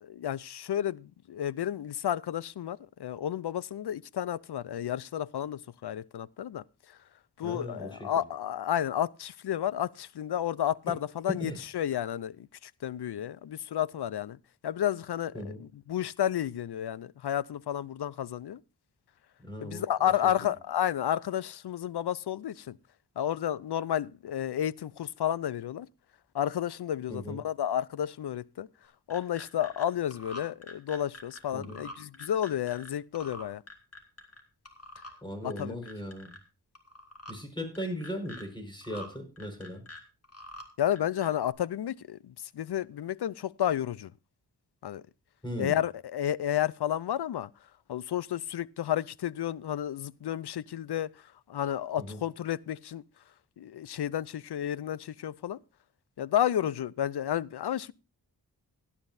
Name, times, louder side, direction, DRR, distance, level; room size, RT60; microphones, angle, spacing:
voice 1, 0.0-7.0 7.4-14.4 14.6-18.6 19.6-22.8 23.2-25.9 26.3-28.7 29.1-33.6 35.4-35.8 40.8-44.1 44.8-45.0 45.6-47.5 47.9-53.0 53.6-55.6 56.2-57.9, left 10 dB, 70° left, 0.6 m, -31 dB
voice 2, 7.4-8.1 11.4-11.6 15.3-15.6 19.4-20.1 20.4-20.5 27.1-27.4 31.5-31.8 35.2-36.4 37.3-39.8 45.4-45.8 52.0-52.2, equal, 10° left, 5.0 m, -38 dB
sound 1, 28.8-29.9 30.1-32.9 33.2-34.4 34.7-35.1 35.5-36.4 36.8-37.3 37.8-38.4 38.8-39.1 39.4-40.7 40.9-41.5, left 1 dB, 35° left, 2.8 m, -46 dB
17.0 x 11.0 x 2.6 m
cardioid pair, 60°, 41 cm